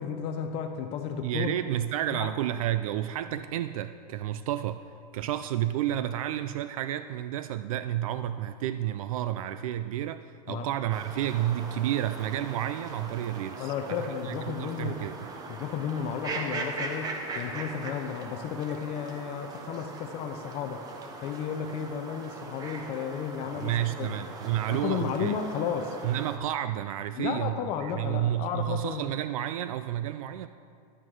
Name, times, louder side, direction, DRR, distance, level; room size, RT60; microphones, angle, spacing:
voice 1, 0.0-1.5 2.1-2.3 10.5-10.7 13.6-15.0 15.5-20.8 21.2-24.1 24.7-26.0 27.2-29.0, left 7 dB, 30° left, 6 dB, 0.5 m, -33 dB
voice 2, 1.2-4.9 5.1-15.2 23.5-25.4 26.0-30.5, right 12 dB, 60° right, 11 dB, 0.4 m, -31 dB
sound 1, 10.9-26.4, right 3 dB, 20° right, 0.8 m, -40 dB
11.0 x 8.6 x 4.6 m, 2.2 s
supercardioid pair, 155°, 20 cm